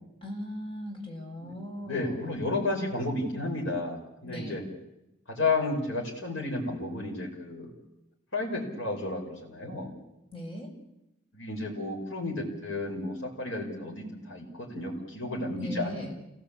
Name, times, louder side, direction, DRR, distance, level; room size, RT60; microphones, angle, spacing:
voice 1, 0.2-2.4 4.2-4.7 10.3-10.7 15.6-16.1, left 1 dB, 25° left, 0 dB, 6.2 m, -39 dB
voice 2, 1.8-4.6 5.3-7.7 8.3-9.9 11.3-16.0, left 2 dB, 70° left, -2 dB, 5.6 m, -32 dB
28.5 x 17.0 x 8.7 m, 0.91 s
head